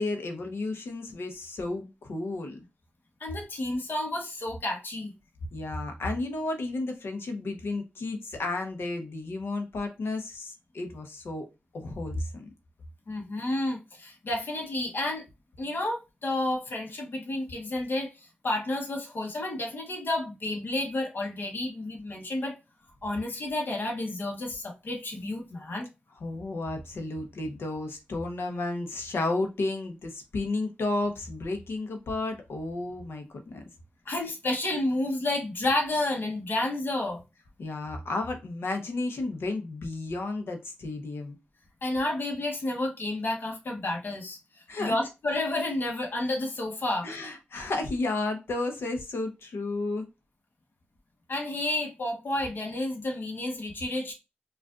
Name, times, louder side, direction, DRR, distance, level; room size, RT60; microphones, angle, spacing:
voice 1, 0.0-2.6 5.5-11.5 11.7-12.5 26.2-33.6 37.6-41.4 44.7-44.9 47.0-50.0, left 2 dB, 85° left, 0.8 m, -32 dB
voice 2, 3.2-5.1 13.1-15.2 15.6-18.1 18.4-22.6 23.0-25.9 34.0-37.2 41.8-47.1 51.3-54.1, left 2 dB, 60° left, 1.1 m, -30 dB
4.8 x 2.5 x 2.4 m
wide cardioid pair, 100°, 4 cm